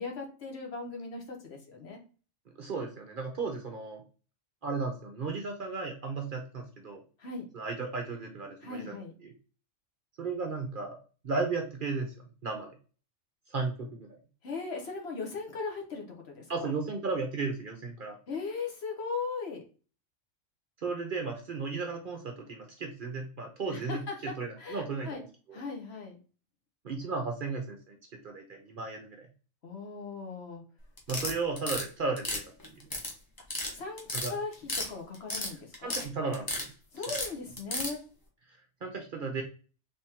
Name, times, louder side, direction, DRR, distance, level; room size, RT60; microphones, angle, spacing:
voice 1, 0.0-2.0 7.2-7.5 8.6-9.1 14.4-16.7 18.3-19.6 23.7-25.2 25.5-26.2 29.6-30.6 33.7-35.9 36.9-38.0, left 4 dB, 60° left, 1 dB, 1.1 m, -38 dB
voice 2, 2.6-4.0 4.6-7.0 7.5-8.9 10.2-11.0 11.2-12.1 12.4-12.7 13.5-14.1 16.5-18.2 20.8-25.6 26.8-28.0 28.2-29.2 31.1-32.4 34.1-34.3 35.8-36.7 38.8-39.4, right 4 dB, 50° right, 3 dB, 0.7 m, -34 dB
sound 1, 31.0-31.8 32.2-33.1 33.4-33.7 34.0-34.9 35.1-36.0 36.3-36.7 37.0-37.9, left 1 dB, 20° left, 0.6 m, -33 dB
3.4 x 3.4 x 2.8 m, 0.37 s
omnidirectional pair, 1.3 m